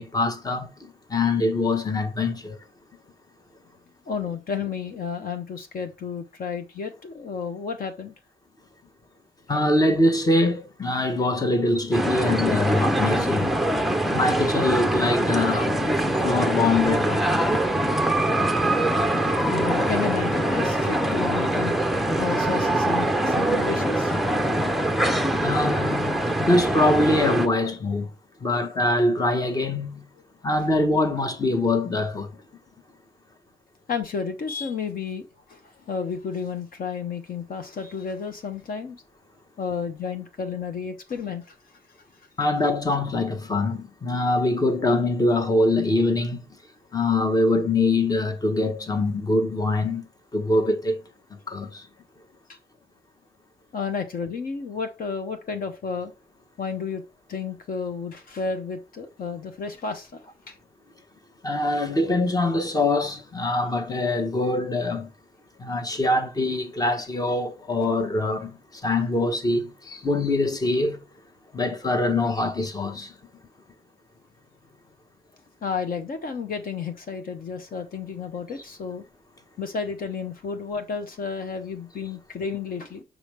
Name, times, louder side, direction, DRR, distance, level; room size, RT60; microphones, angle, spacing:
voice 1, 0.0-2.6 9.5-13.5 14.1-15.8 16.2-17.4 25.4-28.1 28.4-30.0 30.4-32.3 42.4-46.4 46.9-50.0 50.3-51.0 51.5-51.8 61.4-65.1 65.6-71.0 71.5-73.1, left 2 dB, 20° left, 1.0 m, -23 dB
voice 2, 4.1-8.1 19.5-21.8 22.2-24.2 24.4-24.6 33.9-39.0 39.6-41.8 52.5-52.6 53.7-56.1 56.6-57.0 57.3-60.6 75.6-79.0 79.6-83.0, left 5 dB, 50° left, 0.9 m, -32 dB
sound 1, 11.9-27.5, right 1 dB, ahead, 0.6 m, -23 dB
6.3 x 5.0 x 3.1 m
wide cardioid pair, 180°, 18 cm